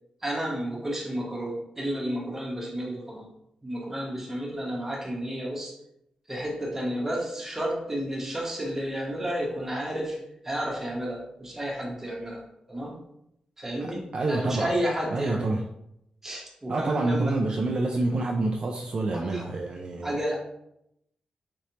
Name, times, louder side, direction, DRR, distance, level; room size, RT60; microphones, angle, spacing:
voice 1, 0.2-3.2 3.6-5.8 6.3-10.2 10.4-12.4 12.7-12.9 13.6-15.5 16.2-17.4 19.1-19.4 20.0-20.4, right 1 dB, 15° right, -2 dB, 1.1 m, -31 dB
voice 2, 13.8-14.7 15.1-15.6 16.7-20.2, right 2 dB, 50° right, 1 dB, 0.4 m, -27 dB
4.1 x 3.2 x 2.9 m, 0.80 s
wide cardioid pair, 115°, 2 cm